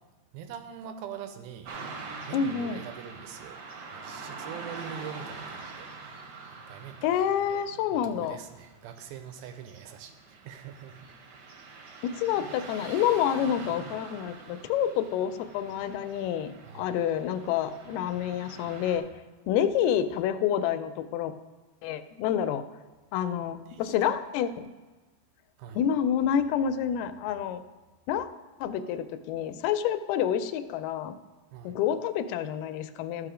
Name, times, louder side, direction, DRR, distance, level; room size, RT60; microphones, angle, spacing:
voice 1, 0.3-1.7 2.2-6.4 6.7-7.6 7.9-11.2 16.6-16.9 23.7-23.9 25.6-25.8 31.5-31.8, right 8 dB, 85° right, 7 dB, 2.4 m, -44 dB
Car passing by / Traffic noise roadway noise, 1.6-19.0, right 4 dB, 60° right, 2.3 m, -44 dB
voice 2, 2.3-2.8 7.0-8.4 12.0-19.1 19.5-21.3 21.8-22.6 23.1-24.7 25.8-27.6 28.1-28.3 28.6-31.2 31.6-33.3, left 9 dB, 85° left, 10 dB, 2.5 m, -28 dB
13.0 x 5.8 x 4.9 m, 1.3 s
omnidirectional pair, 4.4 m